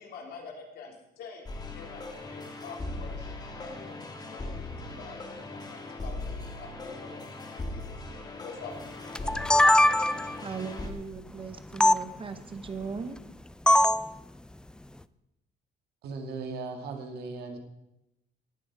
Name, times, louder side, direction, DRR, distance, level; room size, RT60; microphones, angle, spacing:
voice 1, 0.0-1.5 1.7-4.0 4.3-7.2 7.5-10.2, left 5 dB, 70° left, 1 dB, 3.1 m, -47 dB
sound 1, 1.5-10.9, left 2 dB, 25° left, 1.9 m, -39 dB
sound 2, 9.1-10.4 11.8-12.0 13.7-14.1, left 1 dB, 5° left, 0.3 m, -21 dB
voice 2, 10.4-13.2, right 5 dB, 30° right, 10 dB, 1.0 m, -38 dB
voice 3, 16.0-17.6, right 4 dB, 70° right, 4 dB, 2.2 m, -37 dB
18.5 x 7.0 x 4.8 m, 0.89 s
cardioid pair, 110°, 17 cm